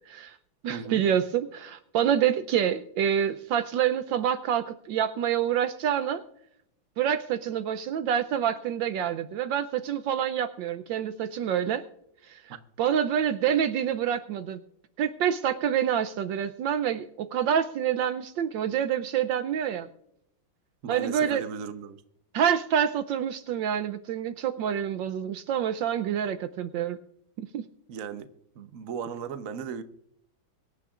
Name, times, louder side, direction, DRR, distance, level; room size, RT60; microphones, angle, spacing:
voice 1, 0.1-0.4 0.6-6.2 7.0-11.9 12.2-12.4 12.8-14.6 15.0-19.9 20.9-21.4 22.3-27.0 27.4-27.7, right 9 dB, 75° right, 1.3 m, -27 dB
voice 2, 0.7-1.0 12.5-12.6 20.8-22.0 27.9-28.3 28.5-29.8, right 6 dB, 55° right, 1.0 m, -36 dB
24.0 x 10.0 x 2.4 m
omnidirectional pair, 2.2 m